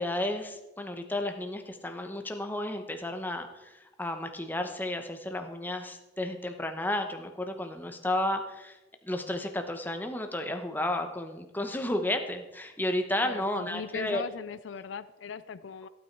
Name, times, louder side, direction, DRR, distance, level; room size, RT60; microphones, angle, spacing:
voice 1, 0.0-8.8 9.0-14.2, left 1 dB, 10° left, 5 dB, 1.0 m, -32 dB
voice 2, 13.2-15.9, left 6 dB, 75° left, 14 dB, 0.4 m, -39 dB
15.0 x 9.1 x 4.7 m, 1.0 s
head